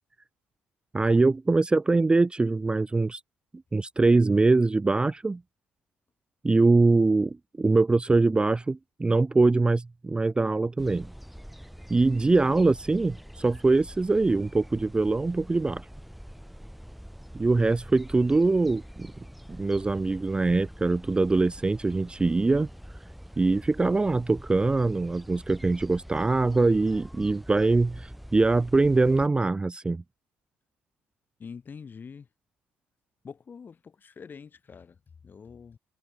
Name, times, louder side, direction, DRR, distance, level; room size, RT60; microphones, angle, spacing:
voice 1, 0.9-3.2 3.7-5.4 6.4-11.1 11.9-15.9 17.3-19.1 19.5-22.7 23.4-30.0, right 3 dB, 20° right, 0.4 m, -23 dB
sound 1, 10.8-29.3, equal, ahead, 5.0 m, -45 dB
voice 2, 31.4-32.3 33.2-35.8, left 6 dB, 40° left, 1.7 m, -45 dB
hypercardioid pair, 50°, 5 cm